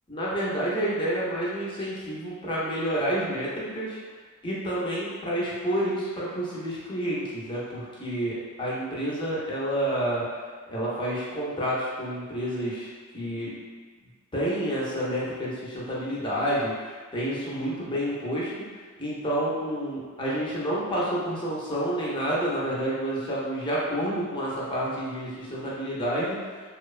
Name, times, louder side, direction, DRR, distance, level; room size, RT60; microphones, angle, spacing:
voice 1, 0.1-4.0 4.4-10.2 10.7-13.5 14.3-18.5 19.0-26.4, right 1 dB, 25° left, -7 dB, 0.6 m, -29 dB
2.9 x 2.0 x 2.3 m, 1.5 s
head